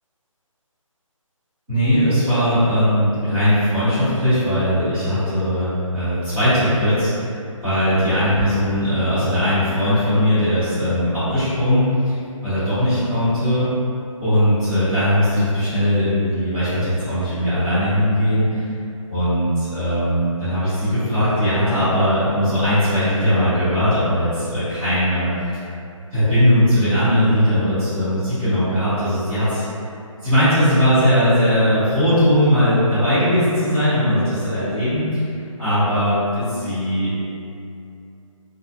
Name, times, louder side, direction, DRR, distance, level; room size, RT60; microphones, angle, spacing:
voice 1, 1.7-7.1 7.6-13.8 14.2-18.5 19.1-25.3 26.1-29.6 30.2-35.2 35.6-37.2, equal, 5° right, -23 dB, 0.4 m, -19 dB
2.4 x 2.1 x 2.5 m, 2.6 s
hypercardioid pair, 165°, 18 cm